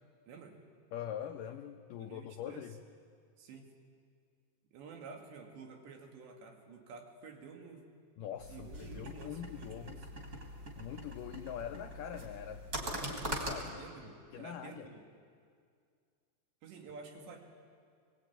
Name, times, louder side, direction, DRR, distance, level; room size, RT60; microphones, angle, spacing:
voice 1, 0.3-0.6 2.0-2.7 3.4-3.8 4.7-7.9 8.5-10.0 13.7-15.1 16.6-17.4, right 5 dB, 90° right, 2 dB, 4.6 m, -51 dB
voice 2, 0.9-2.8 8.2-10.0 10.7-14.9, left 9 dB, 85° left, 6 dB, 1.9 m, -44 dB
sound 1, 8.4-13.7, right 1 dB, 25° right, 2.9 m, -42 dB
23.0 x 22.5 x 8.9 m, 2.2 s
omnidirectional pair, 5.0 m